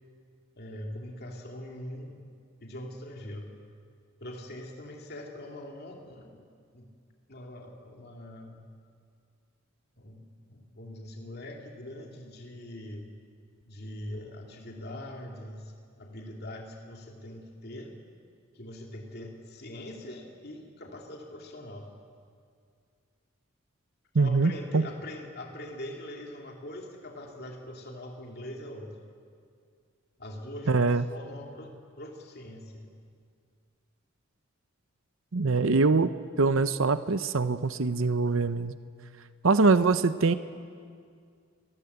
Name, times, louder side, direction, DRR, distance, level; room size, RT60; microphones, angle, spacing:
voice 1, 0.6-2.2 2.6-3.5 4.2-6.4 6.7-6.9 7.3-8.7 10.0-13.1 13.7-15.7 16.0-18.0 18.5-21.9 24.1-28.9 30.2-32.9, left 1 dB, 50° left, 1 dB, 2.7 m, -42 dB
voice 2, 24.1-24.8 30.7-31.1 35.3-36.1 36.4-38.8 39.4-40.3, right 3 dB, 70° right, 12 dB, 0.8 m, -23 dB
29.0 x 20.0 x 8.1 m, 2.2 s
head